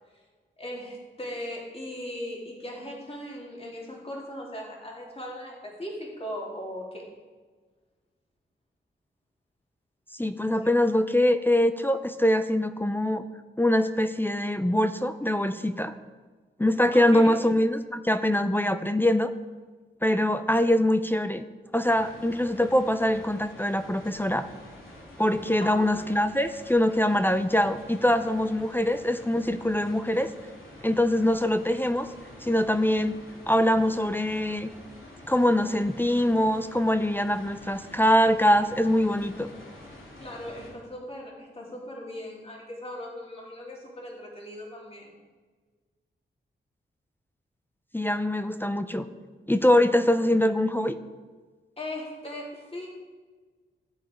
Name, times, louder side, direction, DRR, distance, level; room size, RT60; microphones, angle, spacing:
voice 1, 0.6-7.1 16.9-17.3 25.6-26.0 40.2-45.2 51.8-52.9, left 1 dB, 30° left, -3 dB, 3.2 m, -38 dB
voice 2, 10.1-13.2 13.6-15.9 16.6-19.3 20.0-21.4 21.7-24.5 25.2-30.3 30.8-32.1 32.4-33.2 33.5-34.7 35.3-39.5 47.9-49.1 49.5-51.0, left 1 dB, 10° left, 10 dB, 0.6 m, -23 dB
sound 1, 21.9-40.7, left 1 dB, 90° left, 3.0 m, -47 dB
14.0 x 7.5 x 5.2 m, 1.4 s
wide cardioid pair, 80°, 20 cm